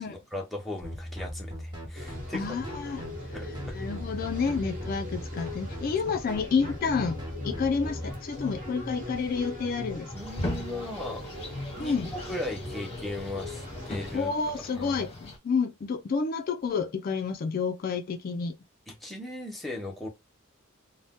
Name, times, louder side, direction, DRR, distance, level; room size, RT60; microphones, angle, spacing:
voice 1, 0.0-2.6 3.3-3.8 10.1-11.3 11.8-14.3 14.7-15.0 18.9-20.1, left 1 dB, ahead, 0.6 m, -37 dB
sound 1, 0.8-8.1, equal, 20° right, 1.1 m, -39 dB
sound 2, 1.9-14.2, left 1 dB, 40° right, 1.1 m, -39 dB
voice 2, 2.3-3.1 3.7-10.1 11.8-12.1 14.1-18.6, left 5 dB, 45° left, 0.3 m, -29 dB
sound 3, 10.2-15.4, left 2 dB, 30° left, 0.8 m, -40 dB
2.6 x 2.1 x 3.4 m
head